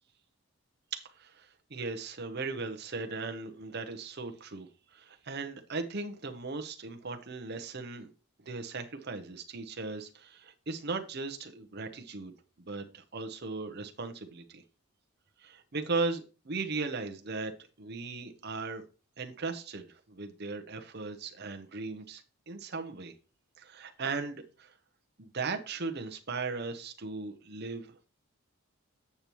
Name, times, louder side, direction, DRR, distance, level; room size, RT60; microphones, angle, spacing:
voice 1, 0.9-8.1 8.4-12.3 12.6-14.6 15.4-17.5 17.8-18.8 19.2-23.1 23.6-24.8 25.2-28.1, right 3 dB, 45° right, 0.7 m, -37 dB
8.3 x 6.8 x 3.0 m
head